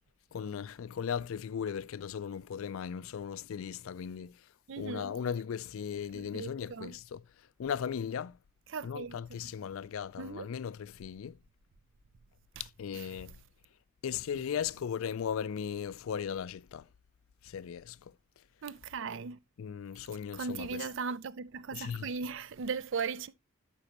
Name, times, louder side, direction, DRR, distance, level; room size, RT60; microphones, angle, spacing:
voice 1, 0.3-4.3 4.8-7.2 7.6-8.4 8.8-11.4 12.6-13.3 14.0-16.9 17.4-18.0 19.6-20.9 21.7-22.1, left 7 dB, 70° left, 0.4 m, -37 dB
voice 2, 4.7-5.2 6.1-6.9 8.7-9.2 10.2-10.5 12.9-13.1 18.6-19.4 20.3-23.4, right 5 dB, 60° right, 0.5 m, -38 dB
11.5 x 5.3 x 2.9 m
head